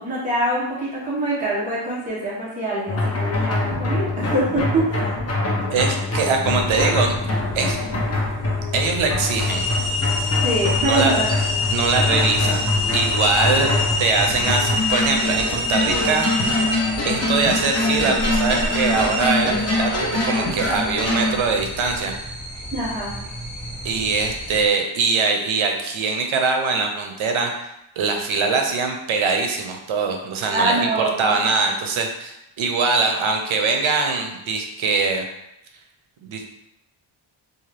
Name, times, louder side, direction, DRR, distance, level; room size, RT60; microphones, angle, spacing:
voice 1, 0.0-5.2 10.4-11.2 13.3-13.7 22.7-23.1 30.5-31.4, right 1 dB, 15° right, -7 dB, 0.7 m, -24 dB
sound 1, 2.9-21.4, left 2 dB, 35° left, 0.5 m, -24 dB
voice 2, 5.7-7.2 7.5-7.8 8.7-9.7 10.8-11.1 11.7-12.6 12.9-13.7 14.0-16.2 17.0-19.9 20.2-22.1 23.8-35.2 36.2-36.5, right 4 dB, 90° right, 3 dB, 0.6 m, -22 dB
sound 2, 6.4-24.7, right 1 dB, ahead, 1.4 m, -37 dB
sound 3, 9.4-24.7, left 2 dB, 75° left, 1.0 m, -27 dB
2.7 x 2.3 x 3.2 m, 0.85 s
wide cardioid pair, 175°, 46 cm